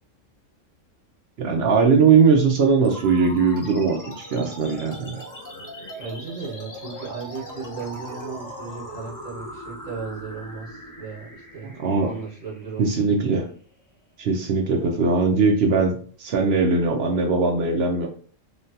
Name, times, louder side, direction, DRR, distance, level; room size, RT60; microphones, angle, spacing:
voice 1, 1.4-4.0 4.3-5.2 11.6-12.1 12.8-13.4 14.2-18.1, right 4 dB, 65° right, 3 dB, 0.7 m, -20 dB
sound 1, 2.8-13.8, equal, 30° left, 0.3 m, -40 dB
voice 2, 6.0-11.7 12.0-13.0, right 5 dB, 80° right, -5 dB, 1.5 m, -36 dB
3.2 x 2.3 x 2.6 m, 0.44 s
omnidirectional pair, 1.3 m